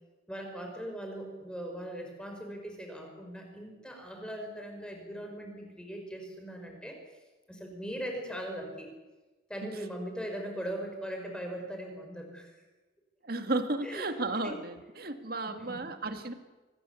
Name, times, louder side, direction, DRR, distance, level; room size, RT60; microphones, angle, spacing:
voice 1, 0.3-7.0 7.5-8.9 9.5-12.5 13.8-14.1 14.4-14.6 15.4-15.8, right 1 dB, 5° left, 3 dB, 5.1 m, -40 dB
voice 2, 13.2-16.3, right 2 dB, 50° right, 7 dB, 2.0 m, -33 dB
25.5 x 19.0 x 8.4 m, 1.2 s
head